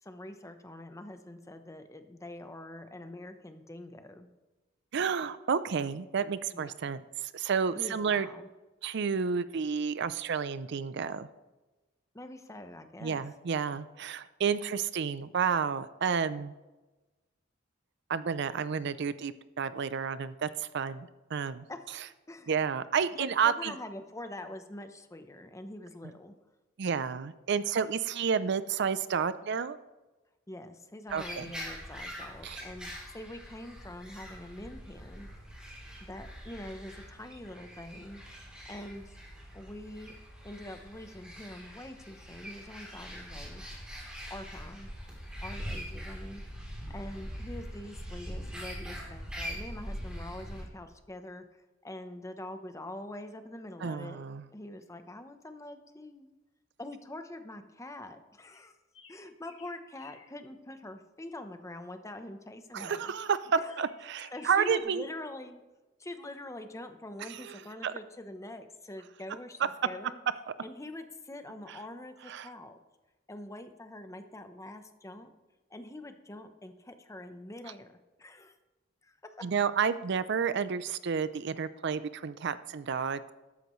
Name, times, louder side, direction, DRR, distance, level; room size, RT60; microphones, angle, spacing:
voice 1, 0.0-4.3 6.5-6.7 7.7-8.5 12.1-13.2 21.7-22.0 22.3-22.5 23.1-26.3 30.5-35.3 36.0-38.2 38.7-39.2 39.5-40.1 40.4-43.6 44.3-44.9 45.4-46.4 46.9-54.2 54.5-56.3 56.8-58.7 59.1-63.1 63.5-63.7 64.3-65.6 66.0-70.2 70.6-72.8 73.3-75.3 75.7-78.6 79.0-79.4, left 1 dB, 15° left, 8 dB, 0.8 m, -44 dB
voice 2, 4.9-8.3 8.8-11.3 13.0-16.5 18.1-21.7 22.5-23.7 26.8-29.8 31.1-31.5 32.4-32.6 53.8-54.5 62.7-65.0 67.3-67.9 71.7-71.8 72.3-72.5 79.4-83.3, right 6 dB, 60° right, 15 dB, 0.5 m, -31 dB
sound 1, 31.1-50.6, equal, 5° right, 3.3 m, -43 dB
sound 2, 58.4-60.4 63.2-64.8, left 5 dB, 75° left, 1.7 m, -57 dB
13.0 x 12.5 x 3.1 m, 1.1 s
head